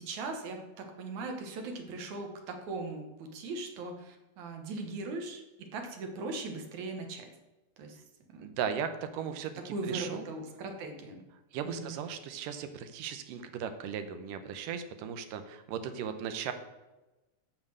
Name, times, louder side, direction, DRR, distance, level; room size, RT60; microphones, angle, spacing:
voice 1, 0.0-7.3 7.8-8.0 8.3-8.4 9.3-9.4 9.7-11.2 11.6-11.9, right 3 dB, 65° right, 4 dB, 2.6 m, -39 dB
voice 2, 8.4-10.3 11.5-16.5, right 7 dB, 85° right, 9 dB, 2.4 m, -37 dB
7.5 x 7.4 x 6.5 m, 1.1 s
omnidirectional pair, 3.8 m